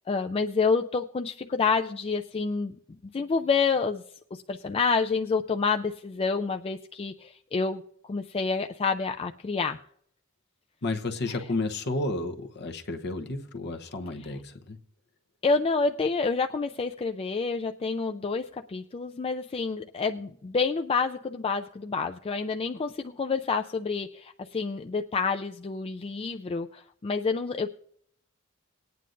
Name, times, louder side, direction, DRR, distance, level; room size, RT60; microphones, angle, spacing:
voice 1, 0.1-2.8 3.1-4.0 4.3-9.8 11.3-11.4 15.4-27.7, left 4 dB, 25° left, 0.4 m, -28 dB
voice 2, 10.8-14.8, left 2 dB, 50° left, 0.9 m, -32 dB
19.5 x 9.3 x 2.6 m
head